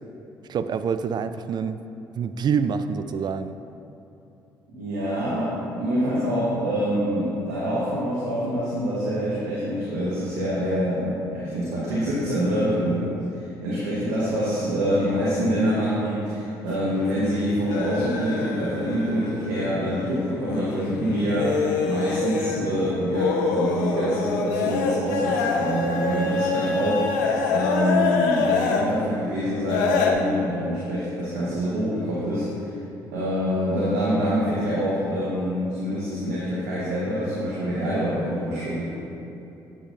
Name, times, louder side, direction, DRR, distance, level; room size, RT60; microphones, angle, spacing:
voice 1, 0.5-1.8 2.1-3.5, right 6 dB, 50° right, 11 dB, 0.4 m, -26 dB
voice 2, 4.7-32.7 33.1-38.8, equal, 90° right, -8 dB, 1.4 m, -26 dB
sound 1, 16.7-20.0 20.4-28.9 29.7-30.1, left 4 dB, 90° left, 0.6 m, -26 dB
8.8 x 8.2 x 2.6 m, 2.8 s
hypercardioid pair, 55°, 10 cm